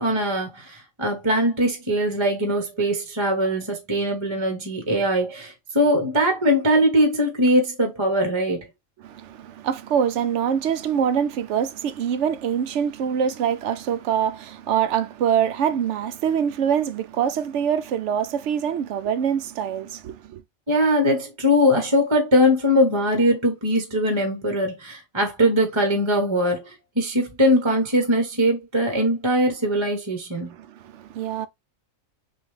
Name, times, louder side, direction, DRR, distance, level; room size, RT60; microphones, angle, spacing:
voice 1, 0.0-8.7 20.7-30.5, equal, 25° right, 1.0 m, -21 dB
voice 2, 9.0-20.4 30.5-31.5, right 8 dB, 65° right, 0.8 m, -24 dB
6.2 x 2.7 x 3.2 m
omnidirectional pair, 1.4 m